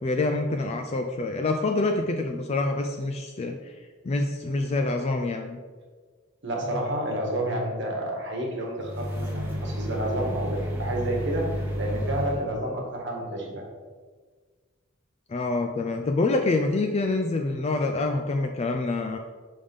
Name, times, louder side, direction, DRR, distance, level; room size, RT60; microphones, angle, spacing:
voice 1, 0.0-3.8 4.0-5.6 15.3-19.2, left 2 dB, 30° left, 4 dB, 0.3 m, -26 dB
voice 2, 6.4-13.7, right 1 dB, 60° right, 0 dB, 1.2 m, -30 dB
sound 1, 8.8-12.5, equal, 10° right, 1.1 m, -31 dB
5.5 x 3.5 x 5.2 m, 1.5 s
head